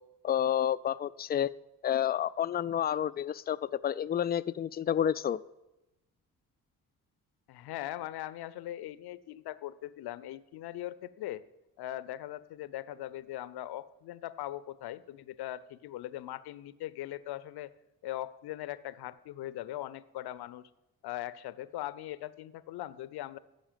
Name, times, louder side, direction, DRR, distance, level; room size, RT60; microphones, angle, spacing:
voice 1, 0.2-1.5 1.8-5.4, left 10 dB, 25° left, 16 dB, 0.3 m, -30 dB
voice 2, 7.5-11.4 11.8-17.7 18.0-20.7 21.0-23.4, left 14 dB, 65° left, 17 dB, 0.6 m, -40 dB
10.5 x 6.6 x 7.5 m, 0.96 s
hypercardioid pair, 45°, 42 cm